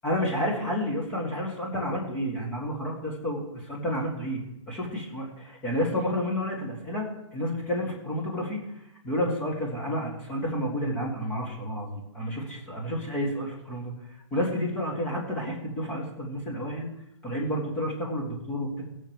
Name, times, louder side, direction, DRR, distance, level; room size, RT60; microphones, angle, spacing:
voice 1, 0.0-7.1 7.3-8.6 9.0-13.9 14.3-16.9 17.2-18.8, equal, 10° left, -3 dB, 2.1 m, -30 dB
18.0 x 7.1 x 4.6 m, 0.85 s
hypercardioid pair, 175°, 16 cm